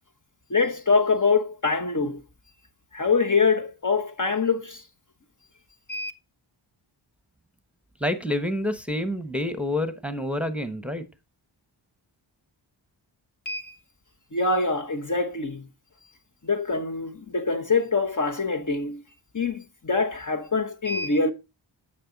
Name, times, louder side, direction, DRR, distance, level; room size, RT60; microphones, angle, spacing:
voice 1, 0.5-2.2 2.9-4.8 5.9-6.1 13.4-13.8 14.3-15.7 16.4-19.0 19.3-21.3, left 4 dB, 40° left, 1.1 m, -24 dB
voice 2, 8.0-11.0, left 1 dB, 5° right, 1.1 m, -28 dB
9.9 x 5.5 x 4.0 m
cardioid pair, 45°, 49 cm